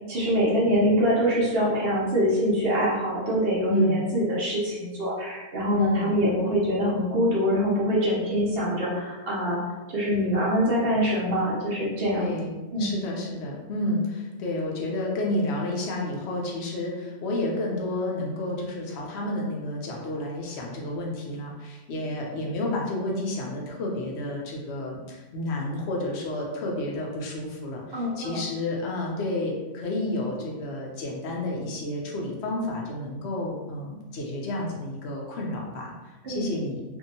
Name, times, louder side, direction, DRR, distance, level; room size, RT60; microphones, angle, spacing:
voice 1, 0.1-9.6 9.9-12.3 12.7-12.9 27.9-28.4 36.2-36.5, equal, 65° right, -6 dB, 0.9 m, -24 dB
voice 2, 3.7-4.0 5.8-6.1 12.1-36.8, left 1 dB, 85° left, -2 dB, 0.9 m, -30 dB
2.7 x 2.5 x 2.6 m, 1.2 s
omnidirectional pair, 1.1 m